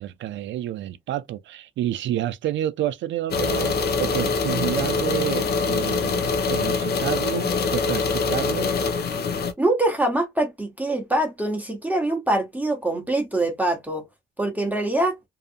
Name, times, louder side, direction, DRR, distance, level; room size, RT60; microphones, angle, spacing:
voice 1, 0.0-8.7, right 12 dB, 70° right, 0.4 m, -29 dB
sound 1, 3.3-9.5, left 4 dB, 55° left, 0.7 m, -24 dB
voice 2, 9.6-14.0 14.4-15.1, right 1 dB, 10° right, 0.8 m, -24 dB
2.7 x 2.5 x 2.4 m
cardioid pair, 90°, 20 cm